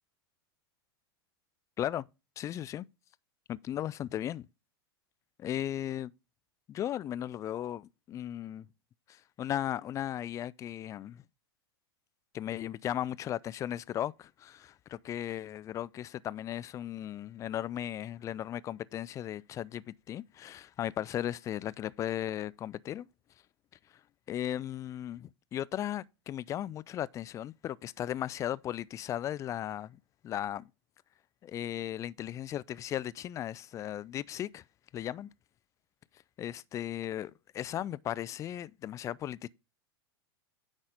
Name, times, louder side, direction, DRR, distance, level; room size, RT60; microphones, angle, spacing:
voice 1, 2.4-2.8 3.5-4.5 5.4-6.1 6.7-8.7 9.1-11.2 12.3-23.1 24.3-30.0 30.2-30.7 31.4-34.6 34.9-35.3 36.4-39.5, left 11 dB, 25° left, 0.3 m, -36 dB
9.6 x 4.1 x 4.9 m
figure-of-eight pair, 95°, 13 cm